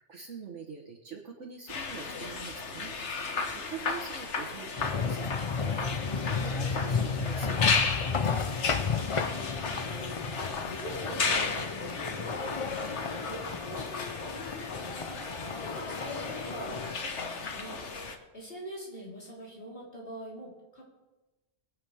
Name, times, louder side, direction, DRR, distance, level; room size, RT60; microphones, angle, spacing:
voice 1, 0.0-3.2 3.5-7.6, right 5 dB, 85° right, 1 dB, 1.6 m, -44 dB
sound 1, 1.7-18.2, left 4 dB, 75° left, 1.5 m, -34 dB
sound 2, 4.8-16.9, left 5 dB, 35° left, 0.5 m, -33 dB
voice 2, 9.0-20.8, equal, 55° left, -5 dB, 4.1 m, -45 dB
24.5 x 8.9 x 3.5 m, 1.1 s
omnidirectional pair, 1.2 m